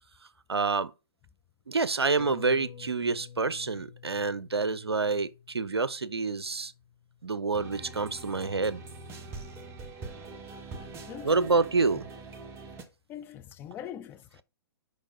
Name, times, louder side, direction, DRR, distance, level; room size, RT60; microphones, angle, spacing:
voice 1, 0.5-0.9 1.7-6.7 7.2-8.8 11.2-12.1, right 4 dB, 80° right, 0.6 m, -28 dB
sound 1, 2.2-7.1 7.5-7.6, left 7 dB, 40° left, 1.9 m, -50 dB
sound 2, 7.5-12.8, right 3 dB, 20° right, 1.1 m, -43 dB
voice 2, 11.1-11.5 13.1-14.4, left 10 dB, 15° left, 0.4 m, -42 dB
6.5 x 5.3 x 5.1 m
figure-of-eight pair, 120°, 13 cm